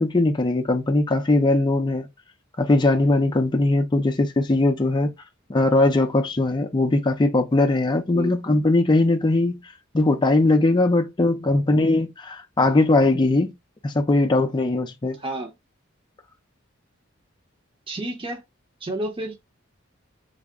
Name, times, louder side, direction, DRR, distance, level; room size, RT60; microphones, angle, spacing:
voice 1, 0.0-2.1 2.6-5.1 5.5-9.6 9.9-13.5 13.8-15.2, left 2 dB, 20° left, 0.4 m, -20 dB
voice 2, 15.2-15.5 17.9-18.4 18.8-19.4, right 1 dB, 25° right, 0.7 m, -30 dB
3.4 x 2.0 x 3.5 m
head